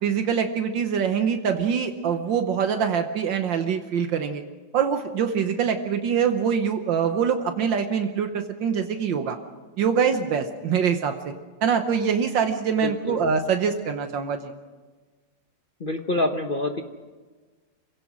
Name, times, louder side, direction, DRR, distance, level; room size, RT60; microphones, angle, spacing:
voice 1, 0.0-4.4 4.7-9.4 9.8-11.3 11.6-14.5, right 7 dB, 75° right, 6 dB, 1.7 m, -24 dB
voice 2, 12.8-13.2 15.8-16.8, left 2 dB, 40° left, 5 dB, 0.9 m, -26 dB
27.0 x 16.5 x 6.2 m, 1.4 s
omnidirectional pair, 2.0 m